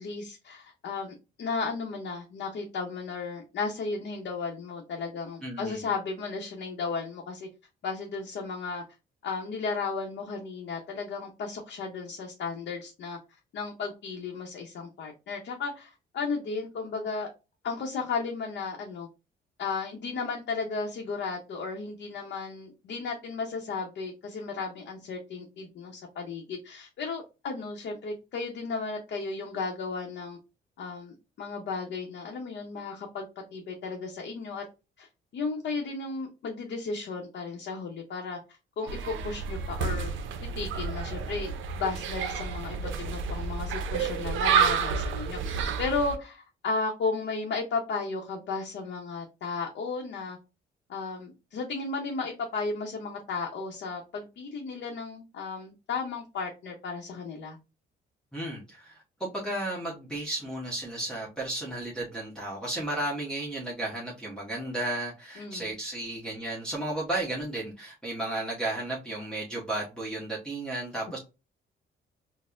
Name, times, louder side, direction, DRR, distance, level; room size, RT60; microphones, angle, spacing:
voice 1, 0.0-7.5 7.8-8.8 9.2-13.2 13.5-17.3 17.6-19.1 19.6-30.4 30.8-33.3 33.5-34.6 35.0-35.1 35.3-38.4 38.8-40.1 40.4-50.4 50.9-57.6 65.4-65.7, left 4 dB, 60° left, 0.7 m, -34 dB
voice 2, 5.4-5.9 58.3-71.2, right 1 dB, 5° left, 1.0 m, -34 dB
sound 1, 38.9-46.2, right 6 dB, 80° right, 0.5 m, -30 dB
4.1 x 2.0 x 2.4 m
cardioid pair, 90°, 20 cm